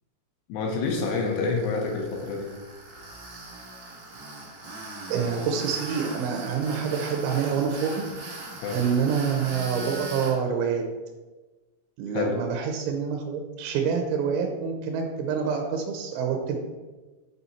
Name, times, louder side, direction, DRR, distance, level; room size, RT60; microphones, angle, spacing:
voice 1, 0.5-2.5 8.6-8.8 12.1-12.3, left 4 dB, 75° left, 1 dB, 2.8 m, -27 dB
Tools, 0.8-10.3, right 2 dB, 70° right, 1.4 m, -40 dB
voice 2, 5.1-7.9 8.7-10.8 12.0-16.6, right 6 dB, 85° right, 3 dB, 3.0 m, -27 dB
7.5 x 4.2 x 4.2 m, 1.2 s
omnidirectional pair, 5.5 m